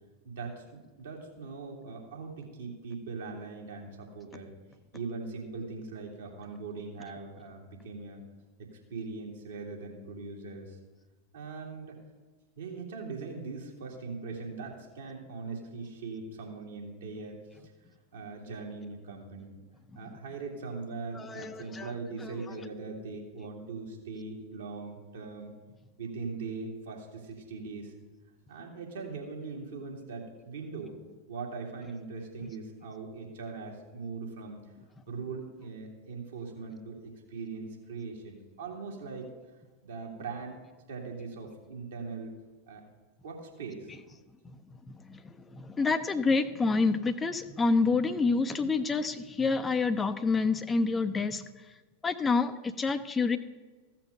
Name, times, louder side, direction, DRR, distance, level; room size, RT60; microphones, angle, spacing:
voice 1, 0.2-4.5 4.9-8.2 8.6-10.8 11.3-12.0 12.6-17.4 18.1-19.6 20.0-25.5 26.0-27.9 28.5-30.9 31.3-34.6 35.1-39.3 39.8-40.6 40.9-42.4 42.7-42.8 43.2-43.9, right 4 dB, 65° right, 0 dB, 2.5 m, -40 dB
voice 2, 21.1-21.9 22.2-22.6 44.9-51.4 52.0-53.4, left 4 dB, 15° left, 10 dB, 0.6 m, -28 dB
15.0 x 5.9 x 6.4 m, 1.3 s
figure-of-eight pair, 90°, 0 cm